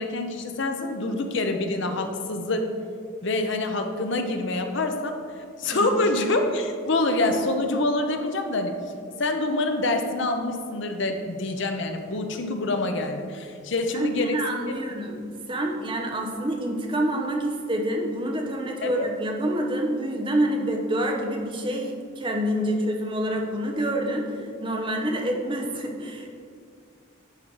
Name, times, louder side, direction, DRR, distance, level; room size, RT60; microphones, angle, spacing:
voice 1, 0.0-2.7 3.2-5.2 5.6-8.7 9.2-14.4 18.8-19.1, left 2 dB, 60° left, 5 dB, 0.7 m, -26 dB
voice 2, 5.7-6.1 13.9-26.3, right 1 dB, 25° right, 2 dB, 0.8 m, -27 dB
10.5 x 4.3 x 4.6 m, 2.3 s
head